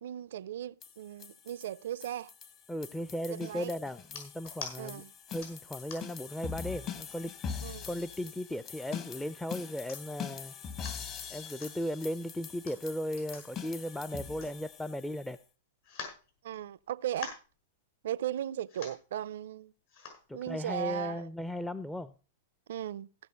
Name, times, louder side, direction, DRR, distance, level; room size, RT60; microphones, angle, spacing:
voice 1, 0.0-2.3 3.3-3.7 4.8-5.1 7.6-7.9 16.4-17.4 18.0-19.7 20.3-21.3 22.7-23.1, right 11 dB, 70° right, 0.5 m, -37 dB
sound 1, 0.8-15.4, left 7 dB, 35° left, 1.4 m, -43 dB
voice 2, 2.7-5.0 5.3-10.5 11.3-15.4 20.3-22.1, left 1 dB, 5° left, 0.5 m, -37 dB
sound 2, 4.0-4.7 5.4-6.2 6.8-6.9 7.3-7.9 8.5-9.2 9.6-9.7 9.9-10.3 10.6-11.0 11.6-11.7 12.5-15.0 15.3-15.4 15.8-16.8 17.1-17.5 18.3-18.4 18.7-19.1 19.9-20.2 20.8-20.9, left 5 dB, 65° left, 5.8 m, -46 dB
15.5 x 6.7 x 4.5 m
hypercardioid pair, 110°, 0 cm